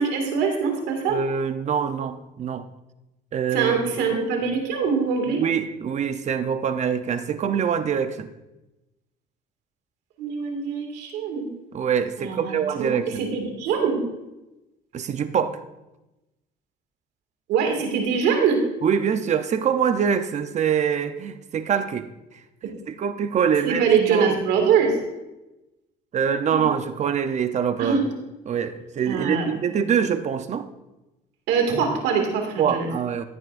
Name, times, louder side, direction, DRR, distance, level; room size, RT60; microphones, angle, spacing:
voice 1, 0.0-1.2 3.5-5.4 10.2-11.4 12.2-14.0 17.5-18.6 23.7-25.0 26.5-26.6 27.8-28.1 29.1-29.6 31.5-32.9, right 6 dB, 90° right, 3 dB, 2.2 m, -23 dB
voice 2, 1.1-2.7 3.3-3.9 5.3-8.3 11.7-13.2 14.9-15.6 18.8-24.3 26.1-28.0 28.5-30.7 32.6-33.2, right 7 dB, 45° right, 10 dB, 0.7 m, -24 dB
14.0 x 9.7 x 2.6 m, 0.98 s
cardioid pair, 110°, 17 cm